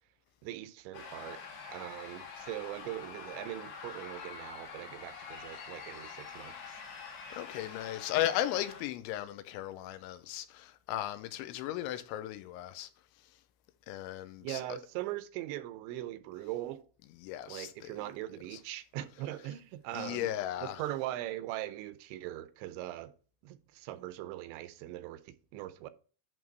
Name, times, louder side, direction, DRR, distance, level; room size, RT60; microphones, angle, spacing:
voice 1, 0.4-1.4 1.7-6.5 14.4-16.9 17.5-20.3 20.6-23.1 23.4-25.9, right 15 dB, 85° right, 2.9 m, -40 dB
sound 1, 0.9-8.8, left 6 dB, 70° left, 4.8 m, -46 dB
voice 2, 7.3-12.9 13.9-14.8 17.2-18.0 18.5-18.6 19.9-20.8, left 12 dB, 85° left, 3.1 m, -36 dB
11.0 x 3.7 x 5.3 m
omnidirectional pair, 5.3 m